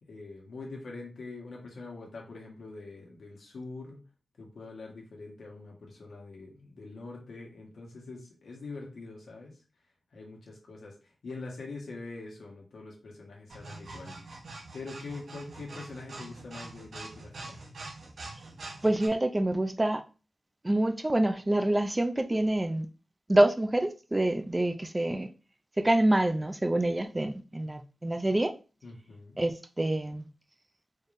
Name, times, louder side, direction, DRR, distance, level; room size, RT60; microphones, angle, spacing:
voice 1, 0.0-4.0 4.4-9.6 10.1-14.2 14.7-17.6 28.8-29.4, left 3 dB, 85° left, 1.3 m, -44 dB
sound 1, 13.5-19.1, right 2 dB, 75° right, 0.9 m, -44 dB
voice 2, 18.8-20.0 20.6-22.9 23.3-25.3 25.8-28.5 29.4-30.3, right 1 dB, 15° right, 0.4 m, -26 dB
4.3 x 3.2 x 2.6 m
wide cardioid pair, 140°, 0 cm